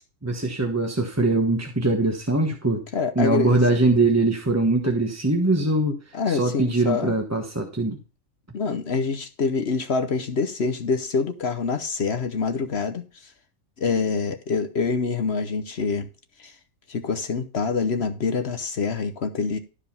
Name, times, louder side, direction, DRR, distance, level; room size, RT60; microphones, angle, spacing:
voice 1, 0.2-2.8 3.1-6.0 6.3-8.0, right 2 dB, 10° right, 1.1 m, -22 dB
voice 2, 2.9-3.6 6.1-7.2 8.5-13.0 13.8-16.1 16.4-16.5 16.9-19.6, left 5 dB, 50° left, 1.0 m, -26 dB
12.5 x 4.9 x 5.5 m
omnidirectional pair, 1.5 m